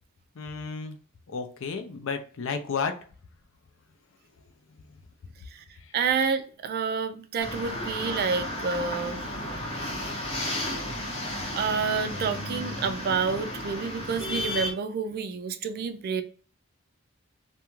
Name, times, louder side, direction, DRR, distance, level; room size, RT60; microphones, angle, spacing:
voice 1, 0.4-1.0 1.3-3.0, left 5 dB, 65° left, 0.5 m, -32 dB
voice 2, 5.9-9.2 11.5-16.2, right 5 dB, 45° right, 0.3 m, -29 dB
sound 1, 7.4-14.7, left 1 dB, 30° left, 0.7 m, -33 dB
2.4 x 2.2 x 2.9 m
head